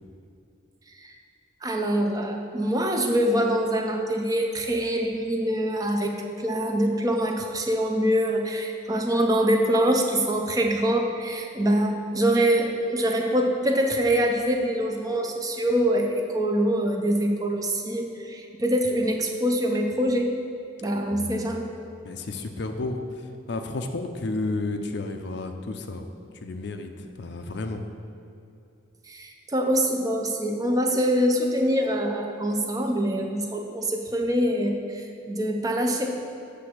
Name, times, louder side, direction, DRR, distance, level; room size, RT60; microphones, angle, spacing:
voice 1, 1.6-20.3 20.8-21.7 29.1-36.2, equal, 20° right, 3 dB, 0.5 m, -24 dB
voice 2, 21.1-21.5 22.0-23.0 23.5-26.0 26.4-27.8, left 2 dB, 55° left, 6 dB, 0.5 m, -32 dB
7.6 x 3.4 x 6.4 m, 2.7 s
head